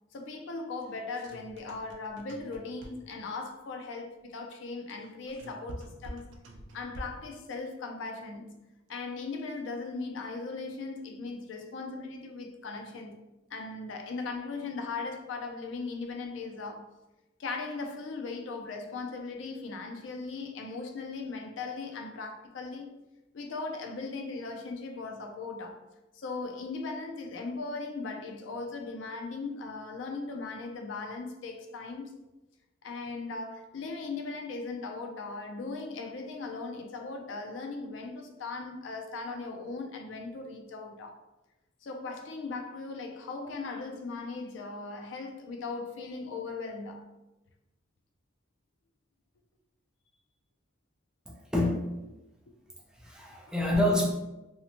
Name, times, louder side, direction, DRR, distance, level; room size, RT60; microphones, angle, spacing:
voice 1, 0.1-6.3 6.7-8.6 8.9-16.9 17.4-22.9 23.3-25.8 26.1-32.1 32.8-41.2 41.8-47.1 52.5-52.6, left 3 dB, 75° left, 0.4 m, -38 dB
sound 1, 0.8-3.3 4.9-7.4, right 1 dB, 80° right, 0.4 m, -46 dB
voice 2, 51.3-51.9 53.0-54.1, left 1 dB, 5° right, 0.4 m, -27 dB
2.6 x 2.1 x 2.8 m
head